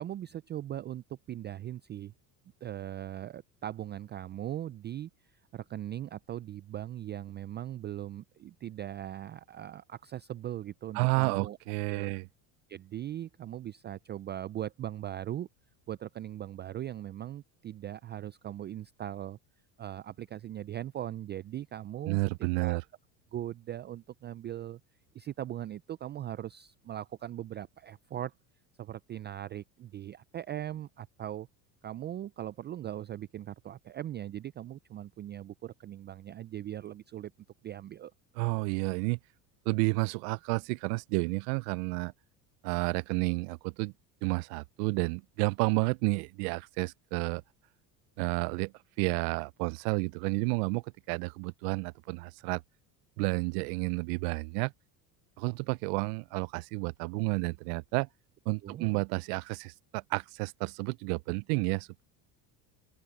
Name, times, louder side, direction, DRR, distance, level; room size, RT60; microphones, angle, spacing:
voice 1, 0.0-2.1 2.6-11.6 11.9-12.1 12.7-15.5 15.9-19.4 19.8-22.2 22.6-22.8 23.3-24.8 25.1-28.3 28.8-31.5 31.8-37.3 37.6-38.1 58.6-59.0, right 12 dB, 25° right, 0.3 m, -39 dB
voice 2, 10.9-12.3 22.1-22.8 38.4-39.2 39.7-42.1 42.6-43.9 44.2-47.4 48.2-48.7 49.0-52.6 53.2-54.7 55.4-58.1 58.5-62.0, right 30 dB, 65° right, 0.6 m, -31 dB
open air
hypercardioid pair, 85°, 50 cm